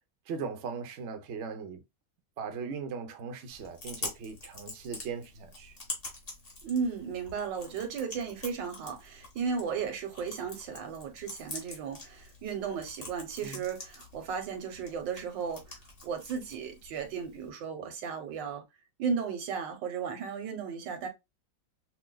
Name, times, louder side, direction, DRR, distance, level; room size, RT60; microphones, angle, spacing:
voice 1, 0.3-1.8 2.4-5.7 13.4-13.6, right 5 dB, 55° right, 0.8 m, -39 dB
Chewing mastication, 3.5-17.5, left 2 dB, 35° left, 1.6 m, -46 dB
voice 2, 6.6-15.7 16.0-18.6 19.0-21.1, right 6 dB, 80° right, 1.6 m, -35 dB
5.8 x 2.2 x 2.2 m
omnidirectional pair, 1.9 m